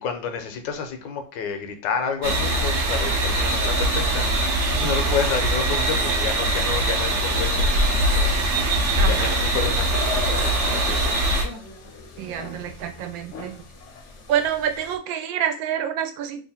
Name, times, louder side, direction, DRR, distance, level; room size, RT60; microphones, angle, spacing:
voice 1, 0.0-8.3 9.1-11.1, left 6 dB, 80° left, 6 dB, 1.3 m, -30 dB
sound 1, 2.2-11.4, right 1 dB, 60° right, 0.8 m, -22 dB
voice 2, 9.0-9.3 12.2-13.7 14.3-16.4, right 9 dB, 85° right, 6 dB, 1.3 m, -27 dB
sound 2, 9.9-15.0, left 5 dB, 60° left, 0.8 m, -36 dB
3.3 x 2.5 x 4.1 m, 0.38 s
omnidirectional pair, 2.1 m